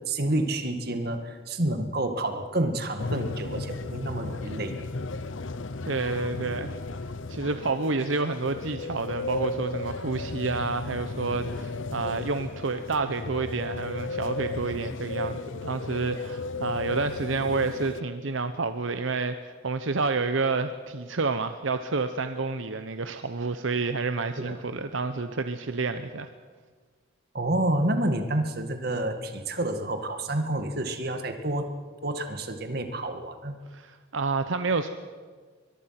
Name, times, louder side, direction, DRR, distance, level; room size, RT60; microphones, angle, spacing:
voice 1, 0.1-4.8 24.4-24.6 27.3-31.7 32.0-33.6, right 1 dB, 50° right, 7 dB, 2.0 m, -29 dB
sound 1, 3.0-18.0, left 3 dB, 75° left, 0.8 m, -35 dB
voice 2, 5.8-6.7 7.3-26.3 33.7-34.9, right 3 dB, 80° right, 9 dB, 0.9 m, -29 dB
23.5 x 22.0 x 6.0 m, 1.5 s
head